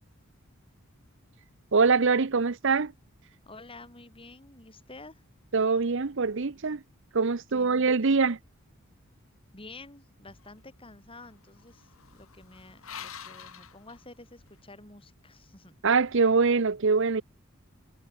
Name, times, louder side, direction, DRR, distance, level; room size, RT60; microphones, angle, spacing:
voice 1, 1.7-2.9 5.5-6.8 7.1-8.4 15.8-17.2, right 4 dB, 60° right, 0.8 m, -23 dB
voice 2, 3.4-5.2 7.5-8.2 9.5-15.7, left 2 dB, 25° left, 7.5 m, -50 dB
sound 1, 10.3-14.6, left 7 dB, 80° left, 4.5 m, -48 dB
head